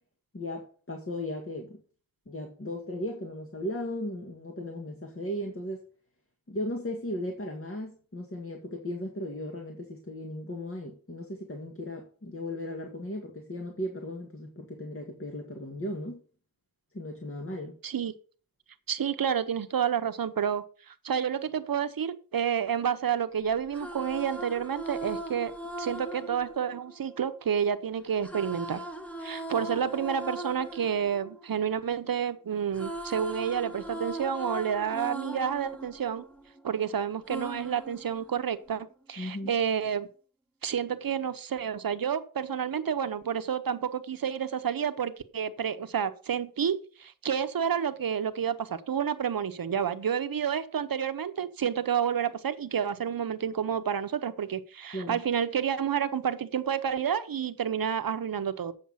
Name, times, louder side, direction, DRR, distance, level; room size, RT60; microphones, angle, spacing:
voice 1, 0.3-1.8 2.3-5.8 6.5-16.2 16.9-17.8 39.2-39.5 54.9-55.2, left 1 dB, 40° left, 2.0 m, -36 dB
voice 2, 18.9-28.8 29.2-36.2 36.6-40.1 40.6-58.7, right 8 dB, 85° right, 0.9 m, -30 dB
sound 1, 23.5-27.6 28.2-32.3 32.5-36.8 37.3-38.7, right 1 dB, 5° left, 1.3 m, -40 dB
8.8 x 6.7 x 5.6 m
wide cardioid pair, 75°, 34 cm